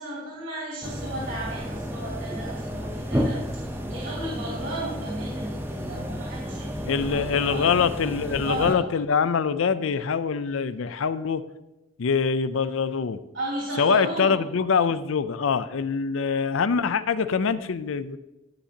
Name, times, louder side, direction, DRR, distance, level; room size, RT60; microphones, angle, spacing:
voice 1, 0.0-7.7 8.2-8.8 13.3-14.4, right 1 dB, 75° right, -6 dB, 3.0 m, -34 dB
sound 1, 0.8-8.7, equal, 10° right, 0.7 m, -32 dB
voice 2, 6.9-11.4 12.0-13.2 13.8-18.2, left 6 dB, 75° left, 14 dB, 0.5 m, -24 dB
16.0 x 5.9 x 2.8 m, 1.0 s
head